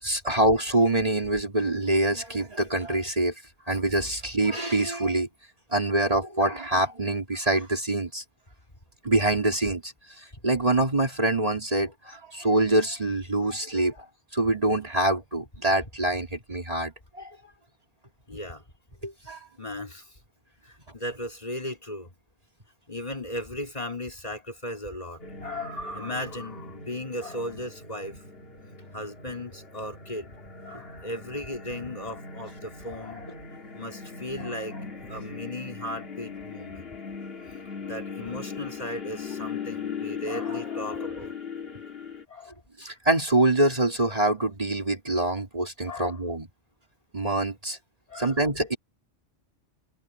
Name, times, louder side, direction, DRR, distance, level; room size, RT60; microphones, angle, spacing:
voice 1, 0.0-3.3 3.7-5.3 5.7-8.2 9.0-14.0 14.3-17.4 19.0-19.4 42.8-46.5 47.1-47.8 48.2-48.8, right 2 dB, 30° right, 2.9 m, -25 dB
voice 2, 18.3-18.6 19.6-20.2 20.6-22.1 22.9-28.2 28.9-30.3 30.6-33.4 33.7-37.0 37.8-41.3 42.3-42.6 45.8-46.2 48.1-48.4, left 1 dB, 35° left, 3.7 m, -36 dB
sound 1, 25.2-42.2, left 5 dB, 55° left, 2.4 m, -39 dB
omnidirectional pair, 1.2 m